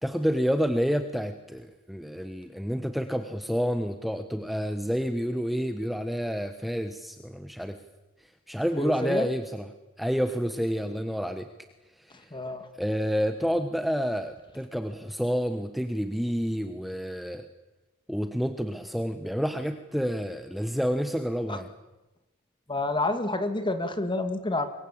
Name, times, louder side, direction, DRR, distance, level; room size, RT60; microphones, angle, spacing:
voice 1, 0.0-7.8 8.5-9.7 10.0-11.5 12.0-12.4 12.7-17.5 18.1-21.7, equal, ahead, 7 dB, 1.1 m, -29 dB
voice 2, 8.8-9.3 12.3-12.7 21.5-21.6 22.7-24.7, left 2 dB, 20° left, 8 dB, 2.2 m, -28 dB
26.0 x 22.5 x 8.7 m, 1.0 s
head